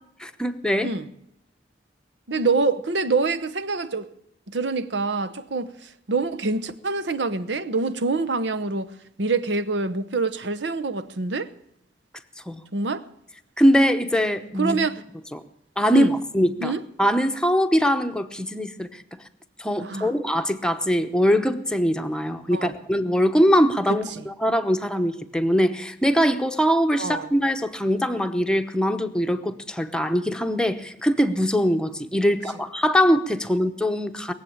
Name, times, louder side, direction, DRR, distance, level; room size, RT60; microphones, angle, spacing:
voice 1, 0.2-0.9 12.5-12.6 13.6-14.8 15.3-15.4 15.8-16.1 16.3-16.7 17.0-19.0 19.6-34.3, equal, 5° left, 0.9 m, -22 dB
voice 2, 2.3-4.1 4.5-8.9 9.2-11.5 12.7-13.1 14.6-15.0 15.9-16.1 16.6-16.8 19.8-20.1 22.5-22.7 23.9-24.2 27.0-27.3, right 3 dB, 75° right, 0.9 m, -26 dB
20.5 x 7.9 x 8.7 m
head